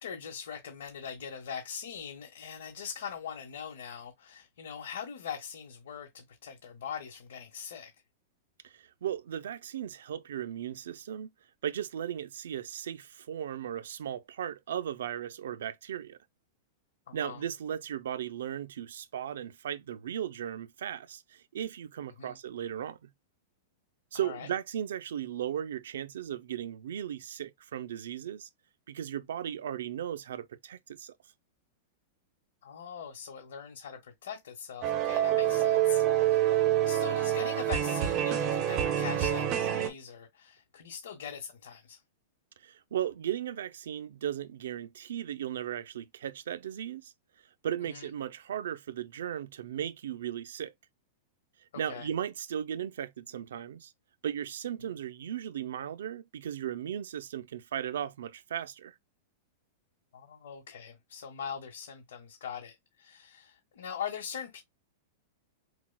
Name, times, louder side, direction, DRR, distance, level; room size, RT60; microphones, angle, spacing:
voice 1, 0.0-7.9 17.1-17.4 22.2-22.4 24.1-24.5 32.6-42.0 47.8-48.1 51.9-52.1 54.8-54.9 60.1-64.6, left 7 dB, 80° left, 1.3 m, -42 dB
voice 2, 8.6-11.3 11.6-16.2 17.1-23.1 24.1-28.5 28.9-31.1 42.6-47.1 47.6-50.7 51.8-53.9 54.2-58.9, right 10 dB, 85° right, 0.4 m, -36 dB
sound 1, 34.8-39.9, right 11 dB, 30° right, 0.7 m, -27 dB
6.0 x 2.3 x 2.2 m
supercardioid pair, 170°, 0 cm